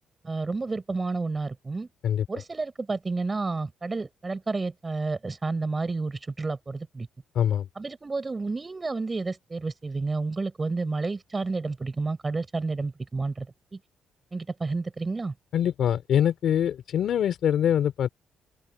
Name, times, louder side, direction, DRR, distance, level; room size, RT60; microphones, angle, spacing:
voice 1, 0.2-1.9 2.3-7.1 7.7-13.5 13.7-13.8 14.3-15.3, right 3 dB, 25° right, 5.1 m, -30 dB
voice 2, 7.4-7.7 15.5-18.1, left 9 dB, 70° left, 3.6 m, -24 dB
open air
cardioid pair, 80°, 0 cm